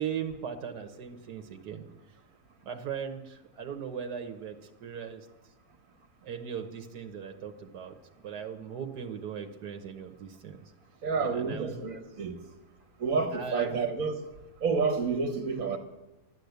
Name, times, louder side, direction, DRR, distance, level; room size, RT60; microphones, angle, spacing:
voice 1, 0.0-1.9 2.6-4.6 4.8-5.3 6.2-8.0 8.2-10.6 11.2-11.9 13.3-13.8, right 7 dB, 90° right, 5 dB, 1.6 m, -38 dB
voice 2, 11.0-12.3 13.0-14.2 14.6-15.8, right 5 dB, 60° right, 4 dB, 1.6 m, -29 dB
12.0 x 11.5 x 8.0 m, 1.0 s
omnidirectional pair, 1.7 m